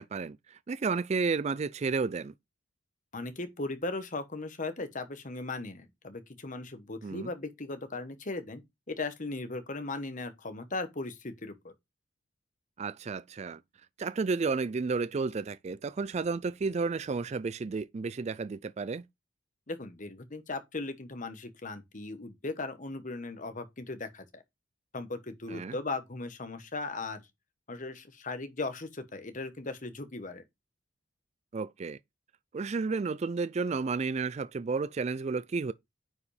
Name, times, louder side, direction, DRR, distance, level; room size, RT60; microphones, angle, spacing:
voice 1, 0.0-2.3 7.0-7.3 12.8-13.6 14.0-19.0 25.5-25.8 31.5-32.0 32.5-35.7, right 4 dB, 35° right, 0.3 m, -32 dB
voice 2, 3.1-8.6 8.9-11.7 19.7-24.4 24.9-27.2 27.7-30.4, left 3 dB, 40° left, 1.2 m, -38 dB
9.5 x 5.0 x 3.3 m
head